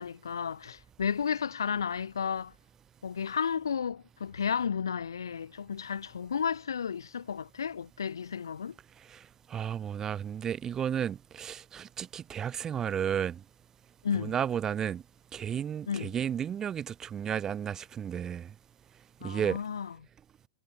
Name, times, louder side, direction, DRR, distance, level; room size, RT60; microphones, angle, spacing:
voice 1, 0.0-2.5 3.0-8.8 14.0-14.3 15.9-16.1 19.2-19.9, left 7 dB, 85° left, 2.3 m, -33 dB
voice 2, 9.5-13.4 14.1-15.0 15.3-18.5 19.2-19.6, right 8 dB, 25° right, 2.5 m, -33 dB
hypercardioid pair, 110°, 2 cm